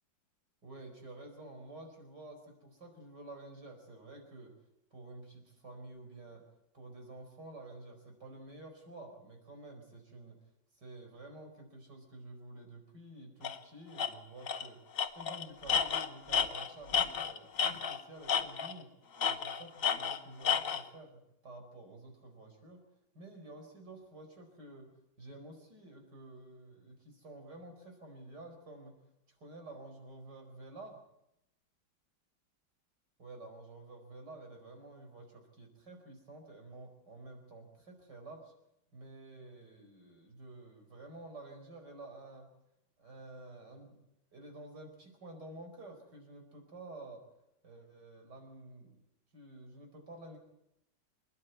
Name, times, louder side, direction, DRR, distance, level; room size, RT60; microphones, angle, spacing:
voice 1, 0.6-4.5 4.9-6.4 6.7-10.4 10.8-14.8 15.2-18.9 19.3-22.8 23.1-24.9 25.2-28.9 29.3-31.0 33.2-38.5 38.9-42.5 43.0-44.0 44.3-47.2 47.6-49.0 49.3-50.4, right 2 dB, 60° right, 4 dB, 5.3 m, -50 dB
Tools, 13.4-13.6 14.0-14.1 14.5-14.7 15.0-18.0 18.3-18.8 19.2-20.8, left 7 dB, 50° left, 1.5 m, -31 dB
27.0 x 11.0 x 9.4 m, 0.83 s
omnidirectional pair, 2.1 m